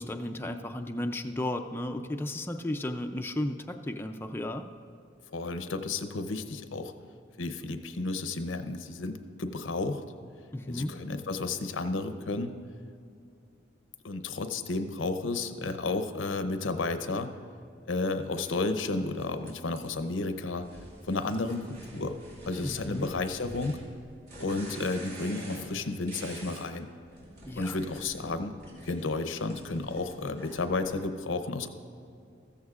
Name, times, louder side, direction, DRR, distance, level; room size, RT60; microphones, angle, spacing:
voice 1, 0.0-4.7 10.5-10.9 22.6-23.1 27.5-27.8, left 1 dB, 10° left, 5 dB, 0.4 m, -34 dB
voice 2, 5.3-6.9 7.4-10.0 10.7-12.5 14.0-17.3 17.9-20.7 21.0-22.2 22.5-23.8 24.4-26.9 27.6-28.5 28.8-31.7, left 3 dB, 90° left, 8 dB, 0.7 m, -32 dB
sound 1, 18.4-18.5 19.2-20.1 20.6-26.7 27.0-31.0, right 1 dB, 60° right, 2.9 m, -47 dB
14.0 x 14.0 x 2.4 m, 2.5 s
head